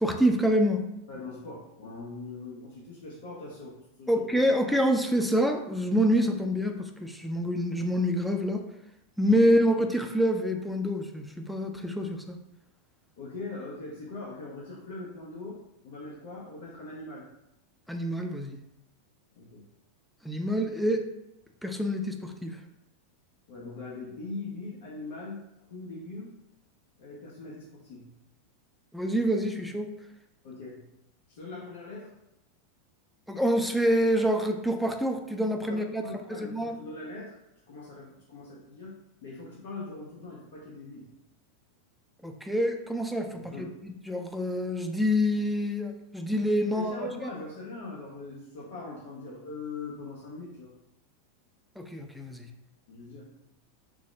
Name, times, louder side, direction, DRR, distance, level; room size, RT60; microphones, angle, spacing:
voice 1, 0.0-0.8 4.1-8.6 9.2-12.4 17.9-18.6 20.2-21.0 21.6-22.5 28.9-29.9 33.3-36.0 36.3-36.7 42.2-47.0 51.8-52.5, equal, ahead, 4 dB, 0.4 m, -26 dB
voice 2, 1.1-4.4 9.4-9.5 13.2-15.6 15.8-17.3 19.4-19.6 23.5-25.4 25.7-26.3 27.0-28.1 30.4-30.8 31.3-32.1 35.7-37.3 37.7-39.0 39.2-41.0 43.3-43.7 46.6-50.7 52.9-53.3, left 3 dB, 70° left, -5 dB, 0.8 m, -41 dB
3.6 x 2.0 x 3.2 m, 0.85 s
hypercardioid pair, 115°, 0 cm